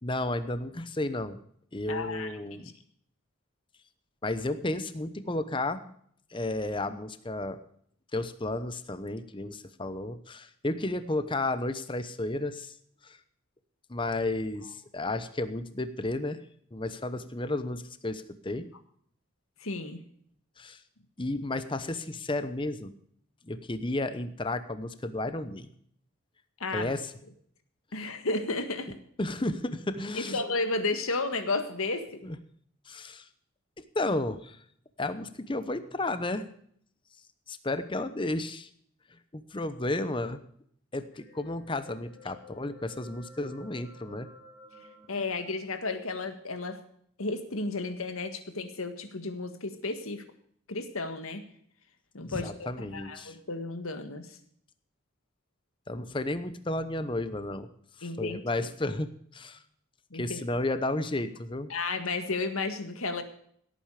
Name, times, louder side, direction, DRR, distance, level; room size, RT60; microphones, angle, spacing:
voice 1, 0.0-1.4 1.7-2.7 4.2-5.9 6.3-7.6 8.1-12.7 13.0-13.2 13.9-16.4 16.7-18.7 20.6-20.8 21.2-22.9 23.4-25.7 26.7-27.1 29.2-30.4 32.2-32.4 32.9-33.3 33.8-34.6 35.0-36.5 37.5-38.7 39.3-40.4 40.9-44.3 52.2-53.4 55.9-57.7 58.0-59.6 60.1-61.7, left 2 dB, 25° left, 11 dB, 0.9 m, -32 dB
voice 2, 1.9-2.6 19.6-20.0 26.6-26.9 27.9-29.0 30.1-32.2 45.1-46.8 47.2-50.2 50.7-51.4 52.1-54.4 58.0-58.4 60.1-60.4 61.7-63.2, left 3 dB, 85° left, 8 dB, 1.8 m, -33 dB
sound 1, 41.1-45.4, left 1 dB, 65° left, 6.6 m, -53 dB
17.5 x 9.0 x 5.0 m, 0.64 s
head